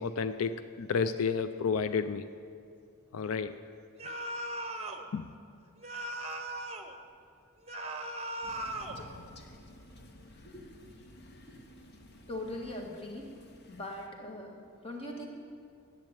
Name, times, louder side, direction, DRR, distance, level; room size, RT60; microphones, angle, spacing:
voice 1, 0.0-2.3 3.1-3.5 5.1-5.3, left 5 dB, 80° left, 11 dB, 0.4 m, -31 dB
sound 1, 4.0-5.1 5.8-6.9 7.7-9.0, right 1 dB, 30° right, 0.9 m, -38 dB
Crow, 8.4-14.1, left 1 dB, 50° left, 1.0 m, -53 dB
voice 2, 12.3-13.3 13.7-15.3, left 1 dB, 30° left, 0 dB, 1.8 m, -41 dB
10.5 x 8.5 x 8.8 m, 2.4 s
head